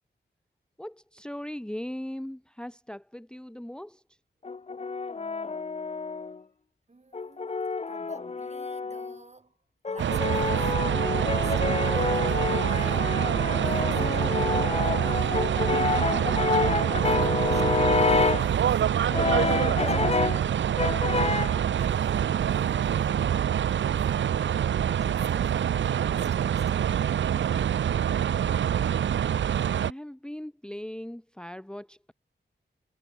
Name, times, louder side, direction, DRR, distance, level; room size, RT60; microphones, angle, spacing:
voice 1, 0.8-4.0 29.7-32.1, left 1 dB, 5° left, 1.1 m, -39 dB
Brass instrument, 4.4-6.4 7.1-9.2 9.9-18.5 19.1-20.5 20.8-21.6, left 4 dB, 35° left, 0.7 m, -28 dB
voice 2, 6.9-7.5 7.9-9.6 9.9-10.8 11.3-15.6 16.3-16.5 17.0-18.9 19.5-20.0 21.7-24.4 24.9-27.1, right 3 dB, 35° right, 6.4 m, -51 dB
sound 1, 10.0-29.9, right 9 dB, 85° right, 0.5 m, -26 dB
sound 2, 11.1-20.1, right 6 dB, 65° right, 1.3 m, -41 dB
wide cardioid pair, 95°, 19 cm